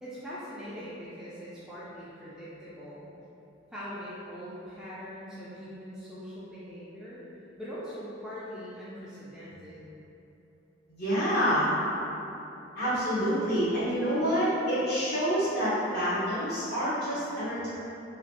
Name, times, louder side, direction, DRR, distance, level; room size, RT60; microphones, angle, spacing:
voice 1, 0.0-3.1 3.7-7.2 7.6-9.9 11.1-11.5, equal, 5° right, -10 dB, 0.3 m, -42 dB
voice 2, 10.9-11.7 12.8-17.7, equal, 55° left, -11 dB, 1.0 m, -27 dB
2.9 x 2.2 x 2.9 m, 2.9 s
head